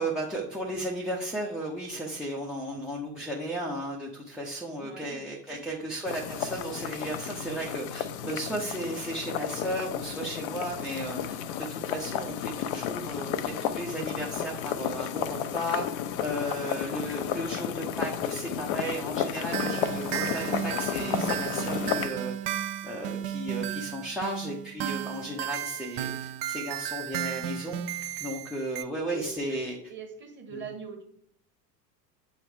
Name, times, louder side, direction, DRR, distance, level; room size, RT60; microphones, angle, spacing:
voice 1, 0.0-15.8 16.2-22.3 22.8-27.8 28.2-29.8 30.5-30.6, right 1 dB, ahead, -4 dB, 0.7 m, -34 dB
voice 2, 4.8-5.3 5.5-5.9 16.2-16.7 29.1-31.0, right 5 dB, 20° right, 2 dB, 1.6 m, -43 dB
sound 1, 6.1-22.1, left 9 dB, 40° left, 0.5 m, -33 dB
sound 2, 19.5-28.8, right 11 dB, 40° right, 0.5 m, -34 dB
7.7 x 3.2 x 4.9 m, 0.65 s
figure-of-eight pair, 80°, 50 cm